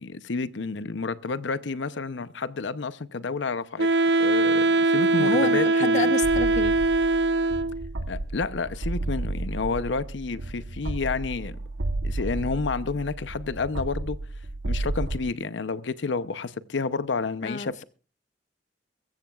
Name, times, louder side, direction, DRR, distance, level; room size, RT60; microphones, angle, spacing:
voice 1, 0.0-3.9 4.2-6.1 8.1-11.6 12.0-14.2 14.7-17.8, left 4 dB, 75° left, 0.7 m, -30 dB
Wind instrument woodwind instrument, 3.8-7.9, right 2 dB, 65° right, 0.6 m, -22 dB
voice 2, 5.2-6.8 17.4-17.8, left 3 dB, 40° left, 0.6 m, -29 dB
sound 1, 6.2-15.2, right 2 dB, 90° right, 1.0 m, -32 dB
23.0 x 15.0 x 2.4 m
head